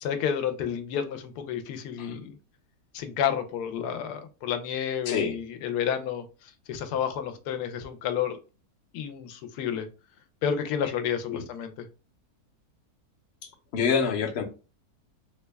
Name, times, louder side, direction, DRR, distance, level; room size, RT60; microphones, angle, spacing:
voice 1, 0.0-2.4 2.9-8.4 8.9-9.9 10.4-11.9, left 8 dB, 90° left, 1.1 m, -30 dB
voice 2, 13.7-14.4, left 6 dB, 55° left, 0.8 m, -26 dB
3.5 x 2.2 x 3.3 m
omnidirectional pair, 1.6 m